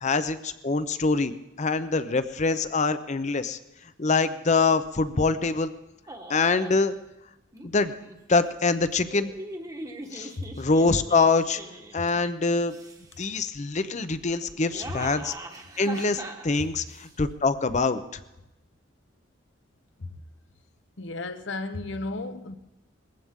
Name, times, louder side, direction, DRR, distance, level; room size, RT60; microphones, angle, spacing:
voice 1, 0.0-3.6 4.0-5.7 6.3-7.0 7.6-7.9 8.3-9.3 10.1-10.3 10.6-11.6 11.9-12.8 13.2-15.3 15.8-18.0, left 3 dB, 40° left, 0.7 m, -24 dB
sound 1, 6.1-6.8 7.5-8.2 9.0-12.2 12.6-13.3 14.4-17.1, right 1 dB, 20° right, 1.2 m, -41 dB
voice 2, 21.0-22.6, left 2 dB, 70° left, 1.0 m, -34 dB
20.5 x 15.5 x 3.7 m
head